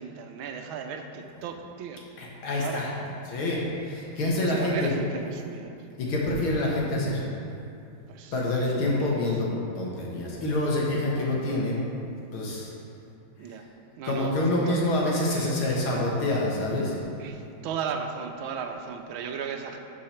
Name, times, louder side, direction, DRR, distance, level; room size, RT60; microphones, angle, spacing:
voice 1, 0.0-2.0 2.6-2.8 4.3-5.7 8.1-9.2 13.4-13.7 14.0-14.4 14.7-14.8 17.2-19.8, right 6 dB, 80° right, 5 dB, 1.5 m, -36 dB
voice 2, 2.2-2.9 3.3-4.9 6.0-7.2 8.3-9.5 9.8-11.8 12.3-12.7 14.0-16.9, left 1 dB, 90° left, -3 dB, 2.3 m, -26 dB
12.0 x 4.8 x 4.3 m, 2.6 s
omnidirectional pair, 2.2 m